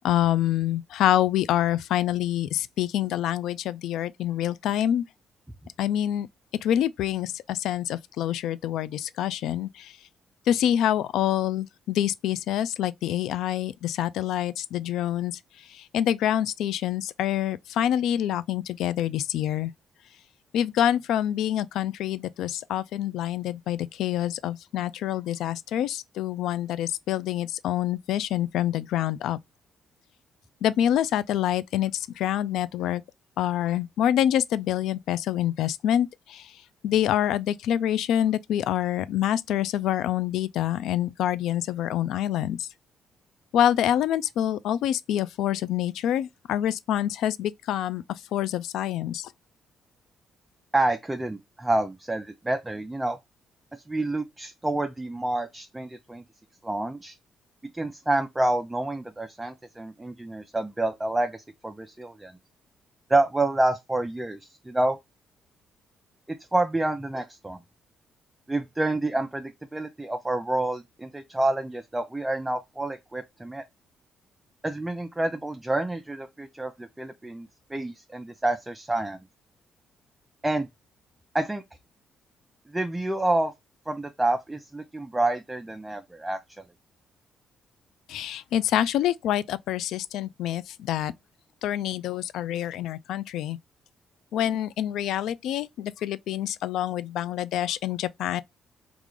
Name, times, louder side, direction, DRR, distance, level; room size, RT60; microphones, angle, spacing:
voice 1, 0.0-5.0 5.8-6.3 6.6-9.9 10.5-15.4 15.7-19.7 20.5-29.4 30.6-33.0 33.4-36.5 36.8-42.7 43.5-48.0 48.3-49.3 88.1-91.1 91.6-93.6 94.3-98.4, left 11 dB, 85° left, 0.3 m, -26 dB
voice 2, 50.7-53.2 53.7-56.2 56.6-57.1 57.7-62.3 63.1-65.0 66.3-67.6 68.5-73.6 74.6-79.2 80.4-80.7 81.3-81.6 82.7-83.5 83.9-86.4, right 2 dB, 10° right, 0.5 m, -28 dB
3.6 x 2.4 x 3.1 m
cardioid pair, 90°, 0 cm